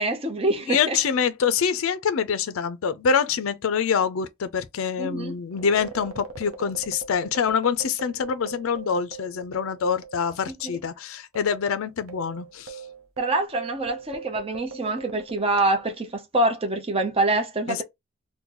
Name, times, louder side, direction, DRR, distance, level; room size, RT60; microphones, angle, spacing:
voice 1, 0.0-1.0 5.0-5.4 10.5-10.7 13.2-17.8, right 2 dB, 25° right, 0.6 m, -25 dB
voice 2, 0.7-12.8 17.7-17.8, left 6 dB, 65° left, 0.4 m, -25 dB
sound 1, 5.5-10.3 10.6-10.7 11.3-16.1, right 5 dB, 70° right, 0.7 m, -41 dB
3.7 x 2.2 x 2.9 m
head